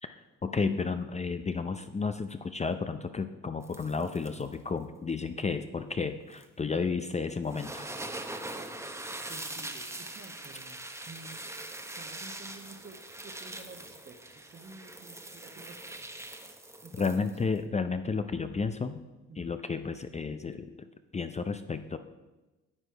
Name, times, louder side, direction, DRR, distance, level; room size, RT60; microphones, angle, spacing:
voice 1, 0.0-7.9 16.9-19.0 19.4-20.9 21.1-22.0, left 4 dB, 25° left, 9 dB, 0.5 m, -32 dB
sound 1, 3.6-4.5 6.3-6.4 7.4-17.6, right 2 dB, 10° right, 0.9 m, -42 dB
voice 2, 9.3-11.6 11.9-16.1 16.8-17.3 19.3-19.6, right 3 dB, 35° right, 6 dB, 1.3 m, -51 dB
9.8 x 8.1 x 4.6 m, 1.1 s
cardioid pair, 90°, 30 cm